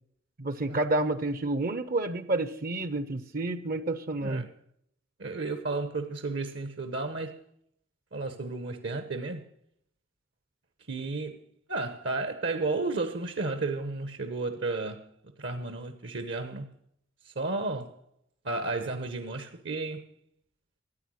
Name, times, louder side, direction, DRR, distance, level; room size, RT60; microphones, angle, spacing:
voice 1, 0.4-4.4, right 2 dB, 45° right, 0.7 m, -29 dB
voice 2, 5.2-7.4 8.1-9.5 10.9-11.4 11.7-15.0 15.4-16.7 17.2-17.9 18.4-20.1, right 3 dB, 65° right, 1.0 m, -33 dB
13.5 x 9.0 x 6.3 m
head